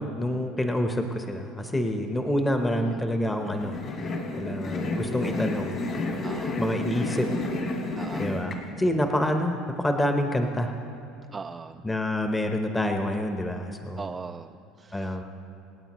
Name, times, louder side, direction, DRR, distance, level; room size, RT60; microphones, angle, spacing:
voice 1, 0.0-3.7 4.3-5.8 6.6-7.3 8.2-10.7 11.8-14.0 14.9-15.2, left 1 dB, 10° left, 4 dB, 0.9 m, -27 dB
sound 1, 3.4-8.6, left 2 dB, 45° left, 2.0 m, -31 dB
voice 2, 6.2-6.6 8.0-8.4 11.3-11.8 14.0-15.2, right 4 dB, 25° right, 6 dB, 0.3 m, -40 dB
26.0 x 8.9 x 3.1 m, 2.7 s
supercardioid pair, 100°, 0 cm